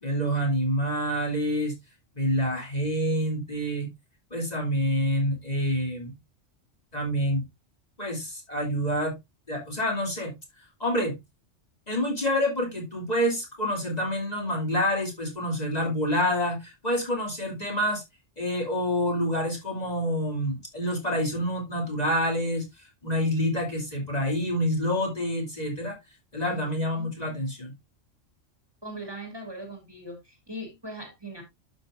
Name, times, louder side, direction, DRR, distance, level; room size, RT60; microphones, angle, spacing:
voice 1, 0.0-1.7 2.1-3.9 4.3-6.1 6.9-7.4 8.0-9.2 9.5-10.3 10.8-11.2 11.9-18.0 18.4-22.7 23.0-26.0 26.3-27.7, equal, 30° left, 2.9 m, -27 dB
voice 2, 26.5-27.1 28.8-31.4, right 1 dB, 20° right, 2.6 m, -40 dB
12.0 x 5.9 x 2.5 m
omnidirectional pair, 1.3 m